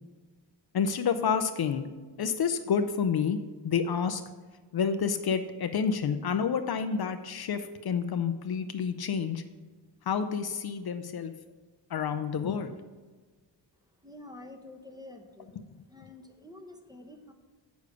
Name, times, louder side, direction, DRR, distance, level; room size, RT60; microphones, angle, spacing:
voice 1, 0.7-1.9 2.2-3.4 3.6-4.2 4.7-9.4 10.1-11.3 11.9-12.8, left 6 dB, 55° left, 8 dB, 0.6 m, -29 dB
voice 2, 13.8-15.5 15.9-17.3, left 2 dB, 10° right, 4 dB, 1.0 m, -48 dB
8.2 x 6.7 x 5.0 m, 1.3 s
cardioid pair, 105°, 46 cm